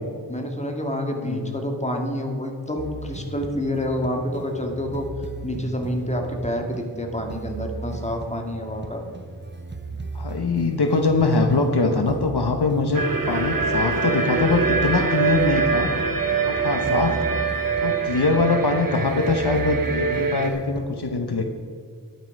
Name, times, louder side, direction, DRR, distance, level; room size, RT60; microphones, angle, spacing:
voice 1, 0.3-5.1 5.4-9.0 16.9-17.2, left 1 dB, 15° left, 2 dB, 1.9 m, -28 dB
sound 1, 2.8-20.9, right 3 dB, 25° right, 0.9 m, -37 dB
voice 2, 10.1-15.9 16.4-17.4 17.8-21.4, left 3 dB, 70° left, 6 dB, 1.0 m, -23 dB
sound 2, 12.9-20.5, right 5 dB, 55° right, 1.2 m, -24 dB
11.0 x 9.4 x 5.3 m, 2.1 s
wide cardioid pair, 45°, 41 cm